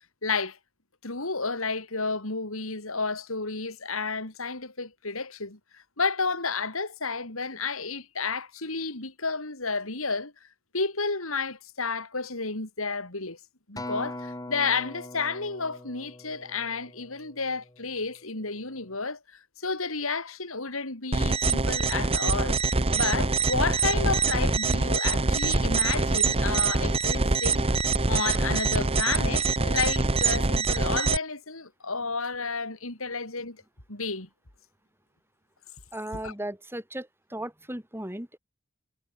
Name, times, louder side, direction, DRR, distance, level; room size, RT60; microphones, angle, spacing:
voice 1, 0.2-0.6 1.0-10.3 10.7-13.4 13.7-22.6 22.9-27.6 28.1-33.6 33.9-34.3 36.2-36.3, left 4 dB, 75° left, 4.3 m, -31 dB
Acoustic guitar, 13.8-18.2 18.8-19.0, left 1 dB, 15° left, 3.5 m, -41 dB
sound 1, 21.1-31.2, right 3 dB, 30° right, 1.0 m, -24 dB
voice 2, 35.9-38.4, right 1 dB, 10° right, 5.7 m, -36 dB
head